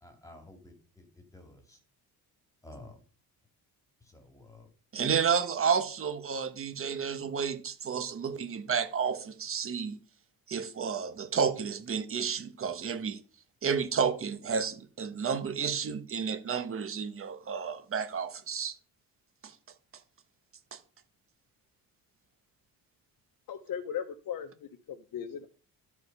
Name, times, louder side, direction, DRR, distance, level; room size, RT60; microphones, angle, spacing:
voice 1, 0.0-1.8 2.6-3.0 4.0-4.7, left 1 dB, 10° left, 2.6 m, -52 dB
voice 2, 4.9-10.0 10.5-13.2 13.6-18.7 19.4-19.5 20.7-20.8, right 6 dB, 35° right, 1.2 m, -31 dB
voice 3, 23.5-25.5, left 8 dB, 60° left, 1.1 m, -38 dB
12.5 x 4.8 x 5.5 m
cardioid pair, 140°, 37 cm